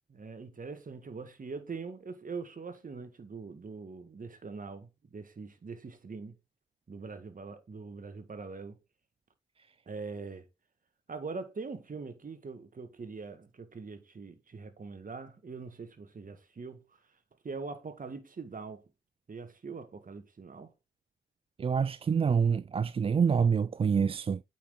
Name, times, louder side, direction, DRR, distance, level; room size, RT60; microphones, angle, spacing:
voice 1, 0.1-6.3 6.9-8.8 9.8-10.4 11.1-16.8 17.4-18.8 19.3-20.7, right 4 dB, 45° right, 1.8 m, -42 dB
voice 2, 21.6-24.4, right 6 dB, 30° right, 0.3 m, -26 dB
8.4 x 6.0 x 3.8 m
supercardioid pair, 45°, 19 cm